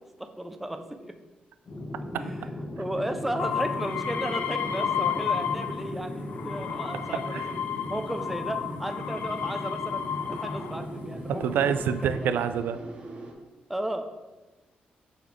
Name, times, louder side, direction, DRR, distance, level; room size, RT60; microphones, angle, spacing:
voice 1, 0.2-1.1 2.1-2.5 2.8-7.6 7.9-12.4 13.7-14.1, right 1 dB, 5° right, 6 dB, 0.4 m, -35 dB
sound 1, 1.7-11.8, left 1 dB, 35° left, 1.1 m, -37 dB
sound 2, 3.4-5.9 6.3-10.8 11.6-12.2, left 8 dB, 80° left, 0.4 m, -32 dB
sound 3, 6.1-13.3, right 3 dB, 40° right, 0.9 m, -45 dB
voice 2, 11.4-12.8, right 8 dB, 85° right, 11 dB, 0.3 m, -26 dB
8.0 x 4.0 x 3.1 m, 1.1 s
wide cardioid pair, 165°, 3 cm